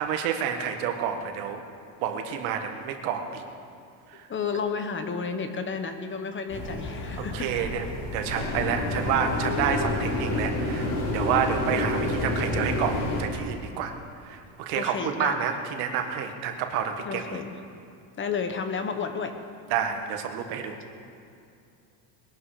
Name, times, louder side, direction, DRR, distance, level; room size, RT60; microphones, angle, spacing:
voice 1, 0.0-1.6 2.0-3.4 4.1-4.2 7.2-7.9 8.1-10.9 11.1-13.9 14.3-17.4 19.7-20.8, right 8 dB, 90° right, 5 dB, 1.7 m, -29 dB
voice 2, 4.3-7.7 14.7-15.4 17.0-17.6 18.2-19.4, left 5 dB, 25° left, 7 dB, 1.2 m, -31 dB
sound 1, 6.5-13.2, left 1 dB, 80° left, 4.7 m, -29 dB
20.5 x 12.0 x 5.0 m, 2.5 s
cardioid pair, 135°, 43 cm